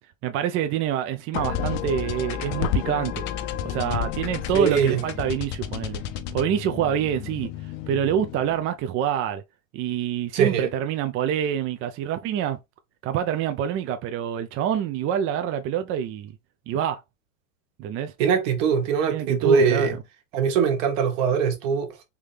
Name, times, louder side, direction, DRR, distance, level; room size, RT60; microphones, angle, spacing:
voice 1, 0.2-3.2 3.6-6.0 6.3-7.5 7.9-9.4 9.7-12.6 13.0-16.3 16.7-17.0 17.8-18.1 19.1-20.0, right 9 dB, 35° right, 0.4 m, -26 dB
sound 1, 1.3-8.7, left 9 dB, 55° left, 0.7 m, -31 dB
voice 2, 4.5-5.0 10.3-10.7 18.2-19.9 20.3-21.9, right 6 dB, 70° right, 1.3 m, -22 dB
3.4 x 2.7 x 3.2 m
supercardioid pair, 120°, 39 cm